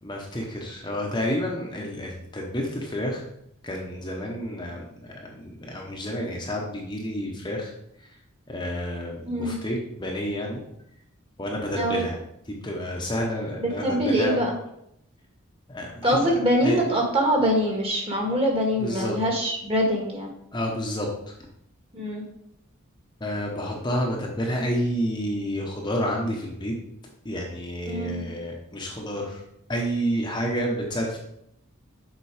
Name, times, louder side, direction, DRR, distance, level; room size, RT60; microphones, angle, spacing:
voice 1, 0.0-3.2 3.6-7.7 8.0-8.1 8.5-10.6 11.4-12.2 12.5-14.4 15.7-16.2 16.6-16.8 18.8-19.1 20.5-21.3 23.2-26.7 27.2-29.4 29.7-31.2, equal, 20° left, -1 dB, 0.9 m, -29 dB
voice 2, 9.2-9.6 11.7-12.0 13.6-14.5 16.0-20.3 21.9-22.2 27.9-28.2, equal, 25° right, 0 dB, 1.6 m, -24 dB
7.1 x 4.4 x 4.9 m, 0.76 s
head